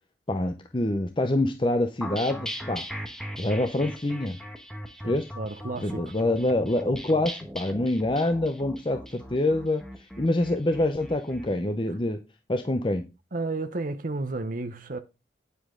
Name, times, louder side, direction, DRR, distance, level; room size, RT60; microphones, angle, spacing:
voice 1, 0.3-2.9 3.4-4.4 5.1-5.3 5.8-9.8 10.2-12.2 12.5-13.0, left 1 dB, 25° left, 0.7 m, -26 dB
sound 1, 2.0-11.5, equal, 5° left, 1.3 m, -39 dB
voice 2, 5.0-6.1 11.9-12.0 13.3-15.0, right 3 dB, 45° right, 0.8 m, -32 dB
9.5 x 8.2 x 3.8 m
head